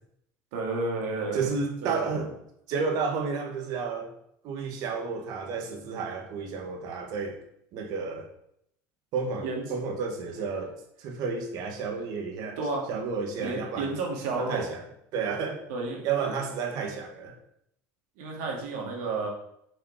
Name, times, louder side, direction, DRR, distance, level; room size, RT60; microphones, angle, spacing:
voice 1, 0.5-1.5 1.8-2.3 9.4-9.9 12.6-12.8 13.4-14.7 15.7-16.1 18.2-19.3, right 3 dB, 80° right, -1 dB, 2.5 m, -32 dB
voice 2, 1.3-2.3 2.7-4.1 4.4-7.4 7.7-8.3 9.1-12.6 12.9-13.9 14.4-14.8 15.1-15.6 16.0-17.4, right 5 dB, 60° right, 4 dB, 1.6 m, -31 dB
6.4 x 5.2 x 4.8 m, 0.73 s
supercardioid pair, 125°, 7 cm